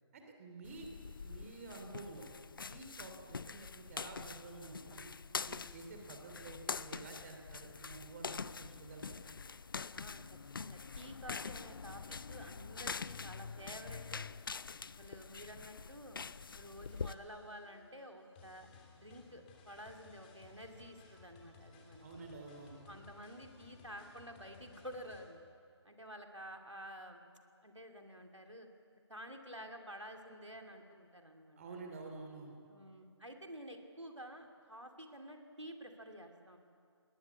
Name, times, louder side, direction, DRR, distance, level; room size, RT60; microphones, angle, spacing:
voice 1, 0.1-0.9 1.2-2.3 2.7-5.1 5.5-9.2 22.0-22.8 31.6-32.6, right 3 dB, 30° right, 3 dB, 2.8 m, -50 dB
sound 1, 0.6-17.1, left 5 dB, 50° left, 0.5 m, -45 dB
voice 2, 9.9-14.2 14.8-16.2 16.5-22.0 22.9-25.4 25.8-27.2 27.6-28.7 29.1-31.8 32.7-36.6, equal, 90° right, 4 dB, 2.7 m, -51 dB
sound 2, 16.6-25.2, left 4 dB, 20° left, 3.0 m, -60 dB
20.0 x 19.0 x 8.4 m, 2.3 s
figure-of-eight pair, 145°, 15 cm